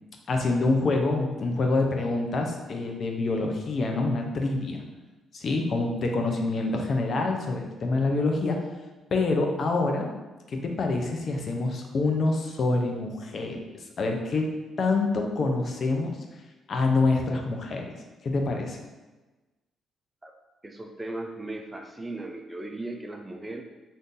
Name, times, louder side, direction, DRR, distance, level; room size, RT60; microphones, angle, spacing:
voice 1, 0.3-4.8 5.3-8.6 9.1-10.1 10.5-13.6 14.0-14.5 14.8-16.2 16.7-17.9 18.2-18.8, left 3 dB, 50° left, 2 dB, 0.5 m, -26 dB
voice 2, 20.6-23.6, right 2 dB, 15° right, 4 dB, 0.3 m, -37 dB
2.6 x 2.6 x 3.7 m, 1.2 s
cardioid pair, 90°, 0 cm